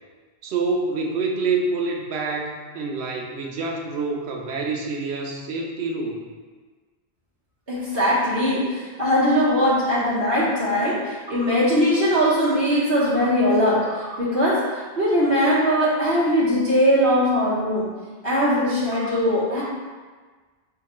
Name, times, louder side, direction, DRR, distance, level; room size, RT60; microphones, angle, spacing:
voice 1, 0.4-6.2, right 3 dB, 75° right, 1 dB, 0.8 m, -27 dB
voice 2, 7.7-17.9 18.2-19.6, equal, 60° right, -10 dB, 1.1 m, -20 dB
5.6 x 2.1 x 2.9 m, 1.4 s
omnidirectional pair, 1.1 m